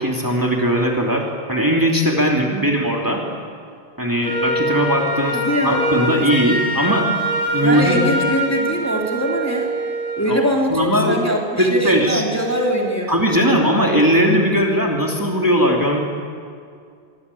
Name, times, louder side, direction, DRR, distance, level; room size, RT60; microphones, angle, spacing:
voice 1, 0.0-3.2 4.0-5.4 5.6-7.1 7.5-8.0 10.3-11.2 11.6-12.2 13.1-16.0, equal, 15° right, 0 dB, 2.9 m, -19 dB
voice 2, 2.5-2.9 5.3-5.9 7.6-9.7 10.2-13.2, equal, 15° left, -1 dB, 3.2 m, -22 dB
Wind instrument woodwind instrument, 4.2-10.3, right 1 dB, 75° right, 5.1 m, -23 dB
25.0 x 24.5 x 8.5 m, 2.3 s
omnidirectional pair, 1.1 m